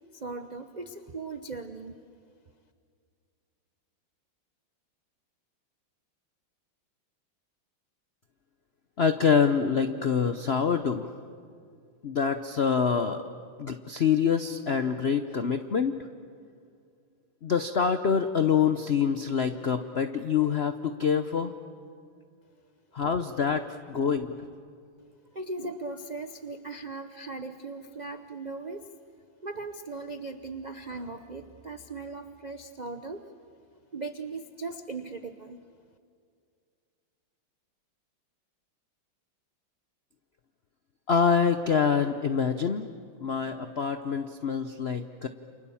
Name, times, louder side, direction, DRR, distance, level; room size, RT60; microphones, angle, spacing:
voice 1, 0.1-2.0 25.3-28.9 29.4-33.2 33.9-35.6, right 3 dB, 70° right, 8 dB, 0.4 m, -38 dB
voice 2, 9.0-11.1 12.0-13.2 13.6-16.0 17.4-21.5 22.9-24.4 41.1-42.9 43.2-45.3, left 6 dB, 70° left, 8 dB, 0.6 m, -26 dB
29.0 x 28.0 x 7.2 m, 2.2 s
omnidirectional pair, 2.3 m